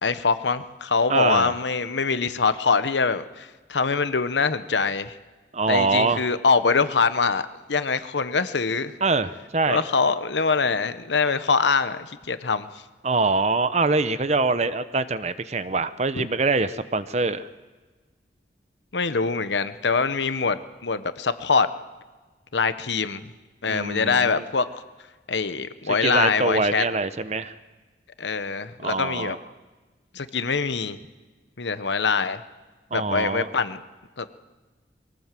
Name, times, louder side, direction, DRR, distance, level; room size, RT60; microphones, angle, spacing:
voice 1, 0.0-5.1 5.7-8.9 9.7-12.7 16.1-16.3 18.9-21.7 22.5-23.3 23.6-24.7 25.3-26.8 28.2-29.4 30.1-31.0 31.6-32.4 32.9-33.8 34.2-34.3, left 4 dB, 80° left, 12 dB, 1.0 m, -24 dB
voice 2, 1.1-1.5 5.5-6.3 9.0-9.8 13.0-17.5 23.7-24.4 25.9-27.5 28.8-29.4 32.9-33.5, right 3 dB, 40° right, 13 dB, 0.8 m, -24 dB
22.5 x 17.5 x 7.6 m, 1.3 s
head